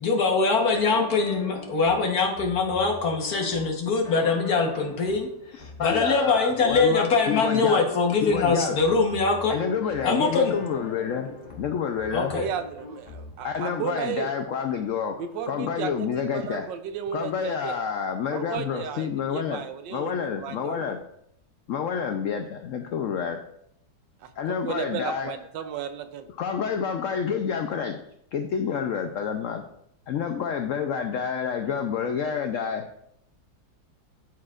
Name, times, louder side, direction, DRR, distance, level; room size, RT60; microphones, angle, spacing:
voice 1, 0.0-9.6 10.0-10.6 12.1-12.5, left 4 dB, 55° left, 1 dB, 1.6 m, -23 dB
sound 1, 0.7-13.6, left 3 dB, 30° left, 0.9 m, -43 dB
voice 2, 5.8-7.9 8.2-8.8 9.5-11.3 11.6-12.3 13.4-15.2 15.5-16.7 17.1-19.6 19.9-21.0 21.7-23.4 24.4-25.3 26.4-28.0 28.3-29.6 30.1-32.9, left 7 dB, 80° left, 6 dB, 0.7 m, -28 dB
voice 3, 12.3-14.3 15.2-17.8 18.3-20.9 24.2-26.3, right 8 dB, 80° right, 9 dB, 1.3 m, -34 dB
12.5 x 4.7 x 2.4 m, 0.74 s
omnidirectional pair, 2.0 m